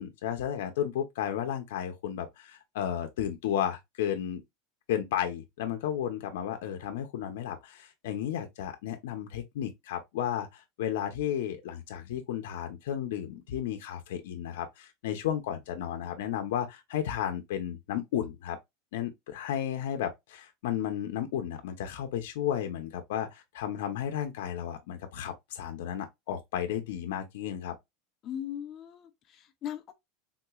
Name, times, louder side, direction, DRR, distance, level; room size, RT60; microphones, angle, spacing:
voice 1, 0.0-4.4 4.9-18.6 18.9-27.7, left 10 dB, 75° left, 0.7 m, -33 dB
voice 2, 28.2-29.9, left 10 dB, 30° left, 0.5 m, -39 dB
3.8 x 2.9 x 2.3 m
supercardioid pair, 165°, 0 cm